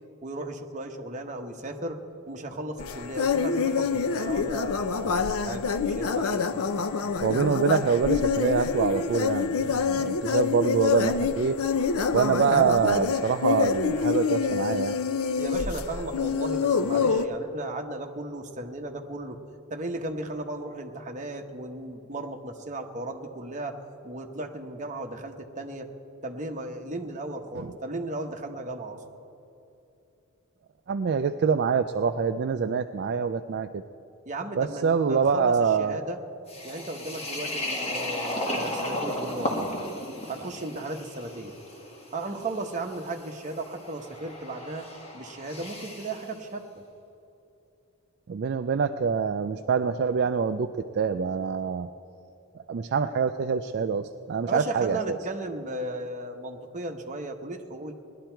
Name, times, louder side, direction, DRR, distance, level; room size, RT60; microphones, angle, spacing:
voice 1, 0.2-2.0 2.3-6.4 15.4-19.4 19.7-23.8 24.0-25.9 26.2-29.0 34.3-36.2 36.6-39.7 40.3-41.5 42.1-44.9 45.1-46.8 54.5-57.9, right 2 dB, 35° right, 3 dB, 1.0 m, -35 dB
sound 1, 2.8-17.3, left 5 dB, 90° left, 0.6 m, -26 dB
voice 2, 7.2-11.6 12.1-14.9 27.6-27.7 30.9-33.8 34.6-36.0 48.3-51.9 52.7-55.2, right 6 dB, 50° right, 8 dB, 0.4 m, -25 dB
sound 2, 36.5-46.3, left 1 dB, 30° left, 1.7 m, -35 dB
19.0 x 11.5 x 4.5 m, 2.8 s
head